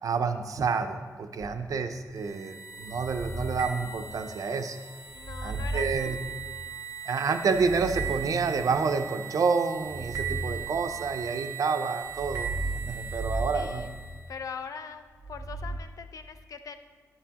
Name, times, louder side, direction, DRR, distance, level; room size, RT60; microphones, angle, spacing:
voice 1, 0.0-4.8 5.4-6.2 7.1-12.5 12.9-13.9, right 5 dB, 70° right, 8 dB, 0.6 m, -29 dB
sound 1, 1.4-2.1 2.9-4.5 5.1-6.9 7.4-9.0 9.8-11.5 12.1-14.6 15.2-15.8, right 2 dB, 20° right, 0.5 m, -37 dB
sound 2, 2.2-14.3, right 8 dB, 50° right, 1.0 m, -39 dB
voice 2, 5.1-6.2 13.5-13.9 14.3-16.8, left 6 dB, 70° left, 9 dB, 0.5 m, -41 dB
10.0 x 9.6 x 2.9 m, 1.4 s
wide cardioid pair, 150°, 6 cm